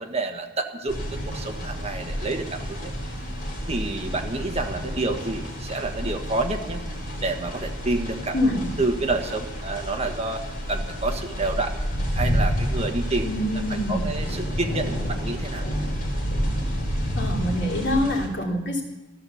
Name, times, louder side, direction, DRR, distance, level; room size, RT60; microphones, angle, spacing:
voice 1, 0.0-2.9 3.7-6.8 7.2-8.3 8.8-11.8 12.1-13.3 13.9-15.6, right 2 dB, 35° right, 5 dB, 1.4 m, -29 dB
sound 1, 0.9-18.3, equal, 50° left, 3.7 m, -29 dB
voice 2, 8.3-8.7 13.2-14.2 17.2-18.8, left 1 dB, 65° left, -1 dB, 3.0 m, -25 dB
14.0 x 13.0 x 7.2 m, 1.1 s
head